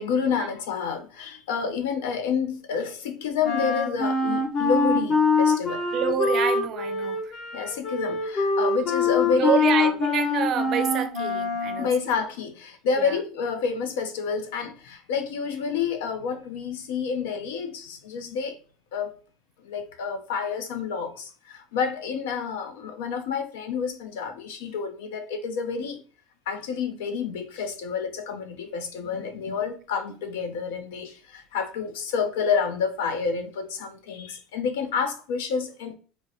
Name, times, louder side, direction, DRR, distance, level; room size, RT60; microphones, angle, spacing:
voice 1, 0.0-5.8 7.5-9.9 11.8-18.6 18.9-19.1 19.6-26.0 26.5-35.9, left 6 dB, 90° left, 0.5 m, -29 dB
Wind instrument woodwind instrument, 3.4-12.0, left 3 dB, 45° left, 0.7 m, -24 dB
voice 2, 5.9-7.3 9.3-11.9 13.0-13.2, right 8 dB, 45° right, 0.5 m, -27 dB
3.7 x 2.1 x 2.7 m
supercardioid pair, 125°, 0 cm